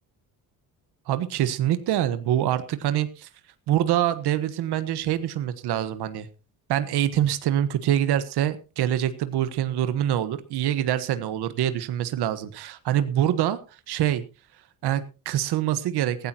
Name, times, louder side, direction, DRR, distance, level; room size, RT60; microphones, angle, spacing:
voice 1, 1.1-3.3 3.7-6.3 6.7-13.6 13.9-14.2 14.8-16.3, right 11 dB, 85° right, 12 dB, 1.3 m, -25 dB
17.0 x 15.0 x 2.9 m, 0.31 s
cardioid pair, 135°, 39 cm